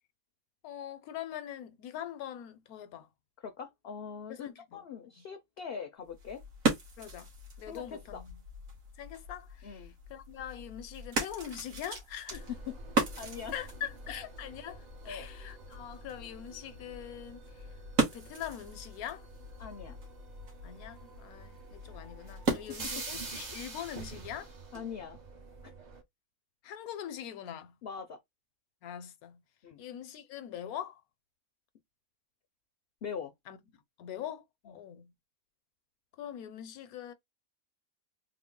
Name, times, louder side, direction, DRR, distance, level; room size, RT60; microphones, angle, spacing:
voice 1, 0.6-3.1 4.3-4.8 7.0-7.3 7.6-8.4 9.0-12.5 13.5-17.7 18.1-19.2 20.6-24.5 26.6-27.7 28.8-29.4 29.8-31.0 33.5-33.6 34.0-35.1 36.2-37.1, left 10 dB, 85° left, 1.1 m, -43 dB
voice 2, 3.4-6.4 7.7-8.2 9.6-9.9 12.5-12.8 13.2-13.5 15.0-15.3 19.6-20.0 22.5-23.1 24.7-25.2 25.6-25.7 27.8-28.2 29.6-29.8 33.0-33.3 34.7-34.8, left 7 dB, 65° left, 0.6 m, -42 dB
sound 1, 6.0-23.2, right 3 dB, 70° right, 1.6 m, -38 dB
sound 2, 12.3-26.0, right 3 dB, 40° right, 0.6 m, -47 dB
3.7 x 2.1 x 3.6 m
omnidirectional pair, 1.5 m